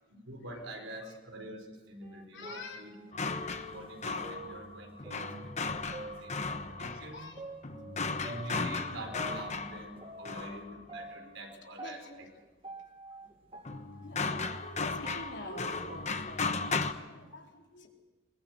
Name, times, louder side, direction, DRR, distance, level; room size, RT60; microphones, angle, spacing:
voice 1, 0.2-2.9 3.6-5.3 5.6-7.2 7.7-7.9 8.2-12.3, right 1 dB, 75° right, 4 dB, 4.8 m, -45 dB
sound 1, 2.0-6.8 7.4-10.6 10.9-17.0, right 2 dB, 30° right, 1.6 m, -48 dB
voice 2, 2.3-2.9 6.0-6.2 7.1-7.4 8.1-8.4 10.2-10.6 11.2-11.4 11.8-12.3 13.1-13.2 14.0-17.9, left 2 dB, 60° left, 0 dB, 4.2 m, -48 dB
sound 2, 3.1-10.9 13.7-16.9, left 4 dB, 35° left, 1.1 m, -36 dB
23.0 x 21.5 x 8.1 m, 1.2 s
head